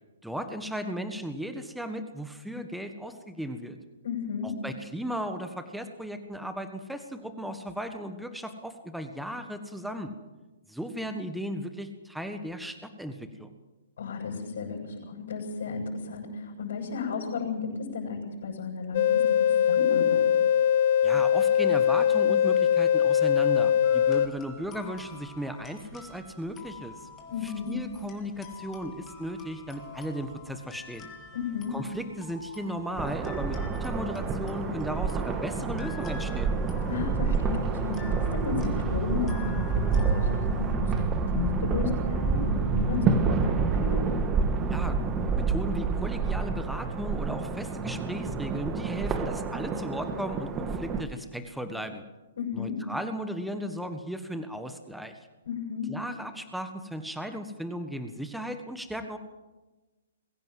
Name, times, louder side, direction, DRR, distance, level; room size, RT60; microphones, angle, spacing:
voice 1, 0.2-3.8 4.4-10.1 10.7-13.5 21.0-27.1 27.4-31.1 31.7-36.5 44.7-45.0 45.3-52.0 52.5-55.2 55.9-59.2, equal, ahead, 7 dB, 1.5 m, -36 dB
voice 2, 4.0-4.5 14.0-20.3 27.3-27.7 31.3-31.8 36.8-40.9 41.3-44.0 52.4-52.7 55.4-55.9, left 5 dB, 65° left, -5 dB, 7.2 m, -33 dB
sound 1, 18.9-24.3, left 9 dB, 50° left, 0.6 m, -22 dB
sound 2, 23.8-40.7, left 5 dB, 20° left, 3.5 m, -48 dB
sound 3, 33.0-51.0, right 4 dB, 20° right, 1.8 m, -28 dB
22.0 x 16.5 x 7.7 m, 1.2 s
figure-of-eight pair, 125°, 0 cm